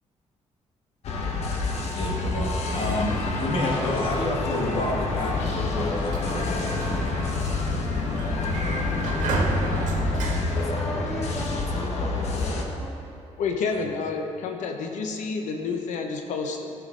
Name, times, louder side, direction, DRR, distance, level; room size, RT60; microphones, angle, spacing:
sound 1, 1.0-12.6, left 3 dB, 60° left, 1.1 m, -27 dB
voice 1, 1.9-7.8 13.7-13.8, left 1 dB, 45° left, -1 dB, 1.5 m, -30 dB
Sliding door, 5.8-11.5, right 3 dB, 90° right, 1.5 m, -32 dB
voice 2, 10.5-13.0, equal, ahead, -1 dB, 0.9 m, -37 dB
voice 3, 13.4-16.7, left 4 dB, 80° left, 3 dB, 0.8 m, -29 dB
15.5 x 6.0 x 3.7 m, 2.8 s
cardioid pair, 175°, 12 cm